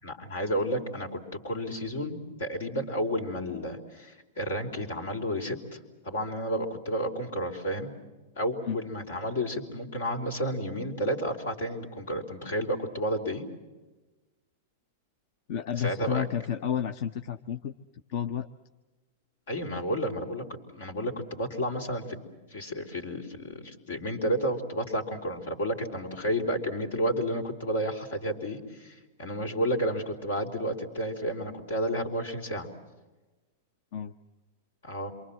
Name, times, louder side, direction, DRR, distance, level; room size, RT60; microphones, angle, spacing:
voice 1, 0.0-5.8 6.0-7.9 8.4-13.4 15.8-16.3 19.5-20.4 20.7-22.2 22.5-32.7 34.8-35.1, equal, 80° left, 4 dB, 4.4 m, -31 dB
voice 2, 15.5-17.7 18.1-18.5 33.9-34.1, left 9 dB, 60° left, 10 dB, 0.8 m, -31 dB
27.5 x 24.0 x 7.6 m, 1.2 s
hypercardioid pair, 110°, 0 cm